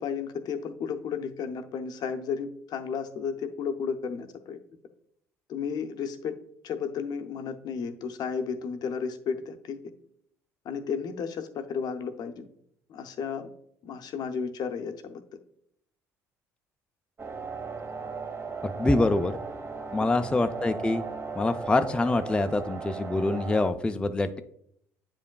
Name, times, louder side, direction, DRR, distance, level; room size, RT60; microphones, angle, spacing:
voice 1, 0.0-4.6 5.5-6.4 6.6-9.8 10.6-12.5 12.9-13.5 13.8-15.2 20.0-20.1, left 6 dB, 55° left, 8 dB, 0.6 m, -33 dB
sound 1, 17.2-23.7, right 4 dB, 30° right, 1.0 m, -37 dB
voice 2, 18.6-19.3 19.9-21.0 21.4-24.4, left 2 dB, 10° left, 8 dB, 0.4 m, -25 dB
8.5 x 5.1 x 2.3 m, 0.70 s
hypercardioid pair, 60°, 8 cm